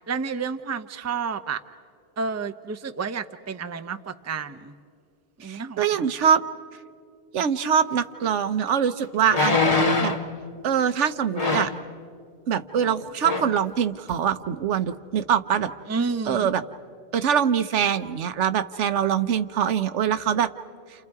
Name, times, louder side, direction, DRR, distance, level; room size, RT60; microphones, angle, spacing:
voice 1, 0.1-1.6 2.2-4.7 5.4-5.8 15.9-16.5, right 5 dB, 20° right, 10 dB, 0.4 m, -30 dB
voice 2, 5.4-6.4 7.3-9.6 10.0-10.1 10.6-11.7 12.5-15.7 16.3-16.6 17.1-20.5, right 8 dB, 90° right, 11 dB, 1.1 m, -23 dB
sound 1, 8.3-8.4 9.3-10.3 11.4-11.8 12.8-13.0 13.2-13.6 14.1-14.2, left 3 dB, 35° left, 1.4 m, -23 dB
30.0 x 29.5 x 4.8 m, 2.3 s
omnidirectional pair, 1.2 m